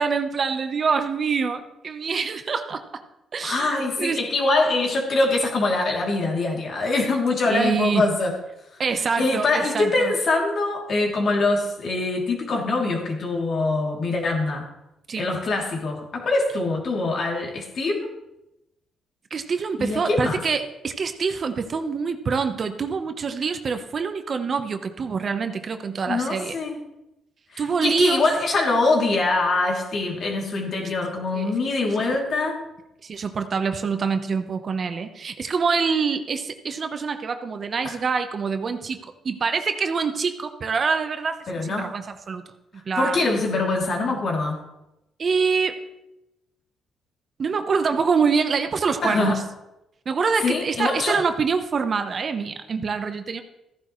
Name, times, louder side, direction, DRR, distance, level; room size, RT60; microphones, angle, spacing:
voice 1, 0.0-3.0 3.3-4.2 7.4-8.1 8.8-10.2 15.1-15.3 19.3-26.6 27.6-28.3 31.3-31.5 33.0-42.4 42.9-43.2 45.2-45.8 47.4-49.4 50.1-53.4, right 5 dB, 45° right, 8 dB, 1.0 m, -25 dB
voice 2, 3.4-8.3 9.2-14.7 15.2-18.1 19.8-20.4 26.1-26.8 27.5-32.6 37.8-38.0 41.5-41.9 43.0-44.6 49.0-49.4 50.4-51.2, left 3 dB, 55° left, 0 dB, 2.9 m, -23 dB
14.5 x 10.5 x 3.2 m, 0.91 s
cardioid pair, 90°, 0 cm